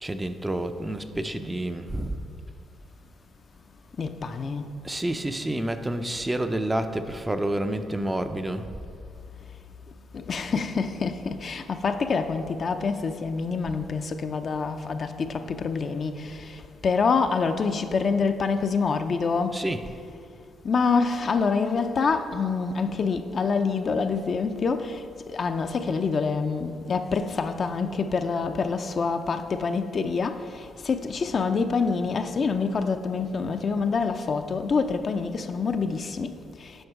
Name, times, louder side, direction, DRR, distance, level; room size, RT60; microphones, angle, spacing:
voice 1, 0.0-2.2 4.8-8.7 19.5-19.9, right 1 dB, 15° right, 8 dB, 0.4 m, -29 dB
voice 2, 4.0-4.6 10.1-16.5 16.8-19.6 20.6-25.0 25.3-30.4 30.8-36.3, left 5 dB, 45° left, 8 dB, 0.4 m, -26 dB
7.9 x 5.4 x 4.7 m, 2.4 s
cardioid pair, 90°, 0 cm